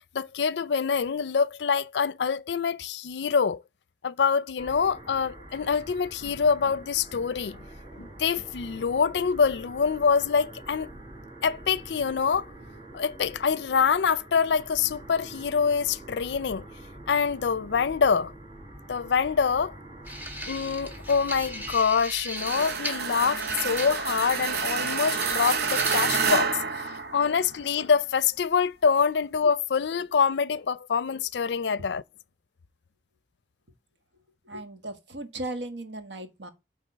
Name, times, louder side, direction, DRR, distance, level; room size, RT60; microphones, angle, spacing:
voice 1, 0.0-3.6 4.0-7.6 8.0-10.9 11.4-12.5 12.9-16.7 17.1-18.3 18.9-19.7 20.4-32.0, left 6 dB, 70° left, 0.4 m, -25 dB
sound 1, 4.6-21.8, right 1 dB, 30° right, 3.9 m, -45 dB
sound 2, 20.1-26.3, equal, 10° right, 1.1 m, -38 dB
sound 3, 22.4-27.6, right 5 dB, 60° right, 0.9 m, -28 dB
voice 2, 34.4-36.5, right 1 dB, 80° right, 1.5 m, -37 dB
8.5 x 3.6 x 5.4 m
head